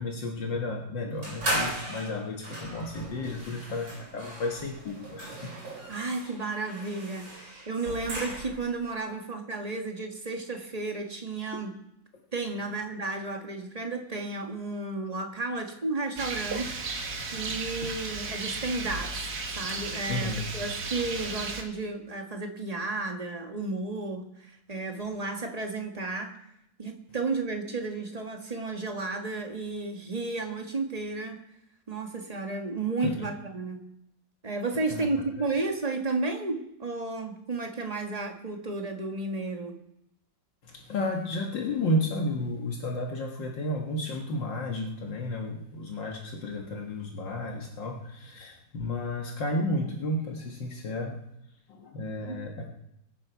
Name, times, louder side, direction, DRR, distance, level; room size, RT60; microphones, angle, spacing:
voice 1, 0.0-5.5 6.2-6.3 17.8-17.9 20.1-20.5 33.0-33.2 34.9-35.1 40.6-51.2 51.7-52.7, left 1 dB, 75° left, 0 dB, 2.2 m, -32 dB
sound 1, 1.2-8.7, right 1 dB, 85° right, 5.1 m, -37 dB
voice 2, 5.9-11.7 12.3-16.8 17.3-26.3 26.8-31.4 31.9-33.9 34.4-39.7 52.0-52.4, right 3 dB, 20° right, 3 dB, 1.5 m, -33 dB
Rain, 16.2-21.6, right 3 dB, 55° right, 2.0 m, -35 dB
24.0 x 9.6 x 4.6 m, 0.80 s
omnidirectional pair, 2.0 m